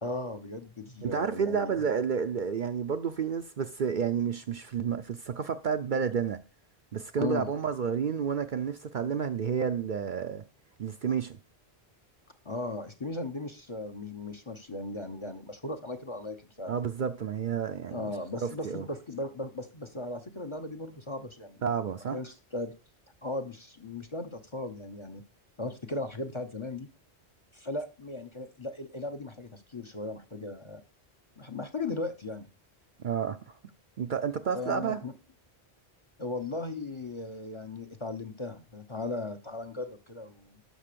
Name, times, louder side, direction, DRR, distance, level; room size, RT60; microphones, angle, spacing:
voice 1, 0.0-1.7 7.2-7.5 12.4-16.7 17.9-21.6 22.1-22.7 23.2-25.2 25.6-26.9 27.5-30.8 31.4-32.5 34.5-35.1 36.2-40.6, left 2 dB, 30° left, 0.8 m, -37 dB
voice 2, 1.0-6.4 6.9-10.4 10.8-11.4 16.7-18.0 18.4-18.9 21.6-22.2 33.0-33.6 34.0-35.0, right 7 dB, 55° right, 0.7 m, -30 dB
11.5 x 4.1 x 6.8 m
omnidirectional pair, 1.1 m